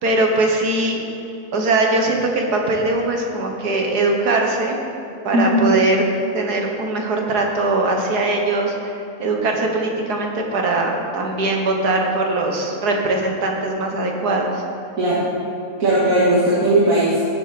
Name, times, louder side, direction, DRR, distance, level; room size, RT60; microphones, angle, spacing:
voice 1, 0.0-1.0 1.5-4.8 5.2-6.0 6.3-8.9 9.2-14.6, right 2 dB, 90° right, 1 dB, 1.9 m, -21 dB
voice 2, 5.3-5.7 15.0-15.2 15.8-17.2, right 1 dB, 60° right, -8 dB, 2.3 m, -17 dB
16.0 x 7.9 x 4.3 m, 2.6 s
omnidirectional pair, 1.6 m